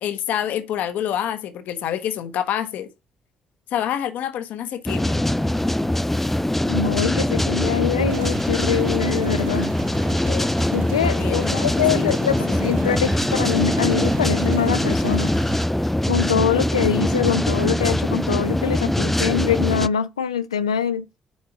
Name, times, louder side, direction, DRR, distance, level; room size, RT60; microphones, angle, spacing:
voice 1, 0.0-2.9 3.7-5.2 10.0-10.5 11.0-12.6, left 10 dB, 60° left, 0.8 m, -28 dB
sound 1, 4.9-19.9, left 1 dB, 5° left, 0.4 m, -22 dB
voice 2, 6.7-9.7 10.7-15.3 16.1-21.0, left 8 dB, 85° left, 0.4 m, -24 dB
Motorcycle / Engine, 8.1-15.6, right 12 dB, 75° right, 0.6 m, -39 dB
7.2 x 4.6 x 4.5 m
figure-of-eight pair, 40°, 3 cm